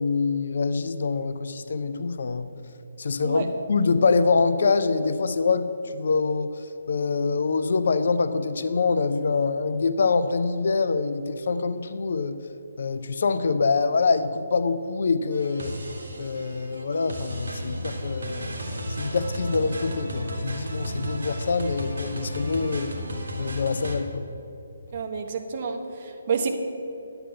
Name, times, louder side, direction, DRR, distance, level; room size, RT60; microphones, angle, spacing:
voice 1, 0.0-2.5 3.0-6.5 6.9-12.4 12.8-15.8 16.2-18.5 19.0-22.9 23.4-24.3, left 4 dB, 55° left, 11 dB, 0.5 m, -25 dB
sound 1, 15.3-24.0, equal, 60° right, 1.6 m, -33 dB
voice 2, 24.9-26.5, right 6 dB, 40° right, 4 dB, 1.0 m, -29 dB
11.0 x 7.9 x 5.8 m, 2.9 s
figure-of-eight pair, 140°, 0 cm